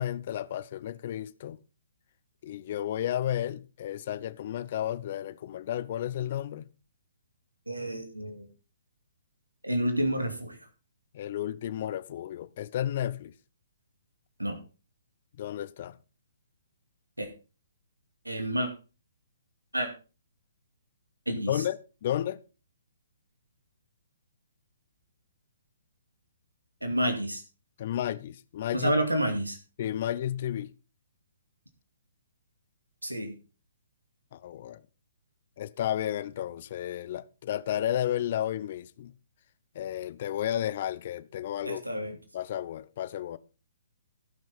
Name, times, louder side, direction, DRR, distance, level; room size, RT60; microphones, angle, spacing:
voice 1, 0.0-1.6 2.4-6.7 11.1-13.3 15.4-16.0 21.5-22.4 27.8-28.9 29.8-30.7 34.3-34.8 35.6-39.1 39.7-41.8 42.3-43.4, left 11 dB, 45° left, 0.7 m, -32 dB
voice 2, 7.7-8.5 9.6-10.6 14.4-14.6 17.2-17.3 18.3-18.7 19.7-19.9 21.3-21.5 26.8-27.4 28.7-29.6 33.0-33.3 41.6-42.2, right 1 dB, 90° right, 2.3 m, -29 dB
16.5 x 6.2 x 4.3 m
figure-of-eight pair, 130°, 0 cm